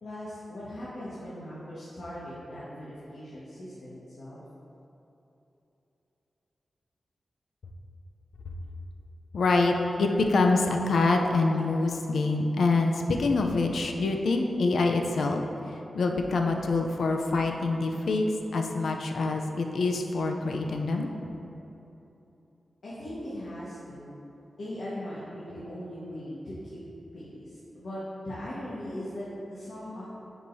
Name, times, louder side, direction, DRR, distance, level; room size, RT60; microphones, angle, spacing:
voice 1, 0.0-4.4 22.8-24.1 24.6-26.8 27.1-30.0, left 1 dB, 65° left, -10 dB, 1.4 m, -39 dB
voice 2, 9.3-15.4 15.9-18.3 18.5-21.1, left 3 dB, 80° left, 3 dB, 0.5 m, -25 dB
10.0 x 4.9 x 2.7 m, 3.0 s
wide cardioid pair, 175°, 0 cm